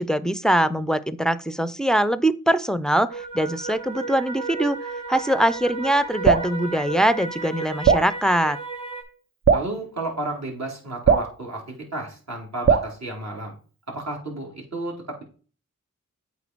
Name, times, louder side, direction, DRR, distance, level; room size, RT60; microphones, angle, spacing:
voice 1, 0.0-4.8 5.1-8.6, right 1 dB, ahead, 16 dB, 0.5 m, -22 dB
sound 1, 3.1-9.0, right 3 dB, 75° right, 1.7 m, -33 dB
Drip, 6.2-6.5 7.8-8.1 9.4-9.7 11.0-11.3 12.7-12.9, right 6 dB, 40° right, 0.7 m, -18 dB
voice 2, 9.5-13.5 13.9-15.2, right 2 dB, 60° right, -1 dB, 3.3 m, -32 dB
8.2 x 4.4 x 4.6 m, 0.38 s
cardioid pair, 50°, 31 cm